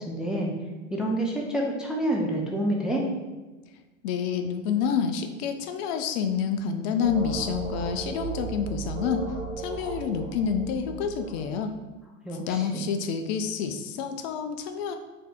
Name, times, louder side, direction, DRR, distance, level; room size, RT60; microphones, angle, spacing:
voice 1, 0.1-0.5 0.9-3.0 12.2-12.9, right 1 dB, ahead, -1 dB, 0.3 m, -28 dB
voice 2, 4.0-9.3 9.6-11.7 12.4-15.0, left 6 dB, 55° left, 7 dB, 0.5 m, -28 dB
sound 1, 7.0-11.7, right 4 dB, 75° right, 1.4 m, -36 dB
4.3 x 2.8 x 3.4 m, 1.2 s
hypercardioid pair, 100°, 39 cm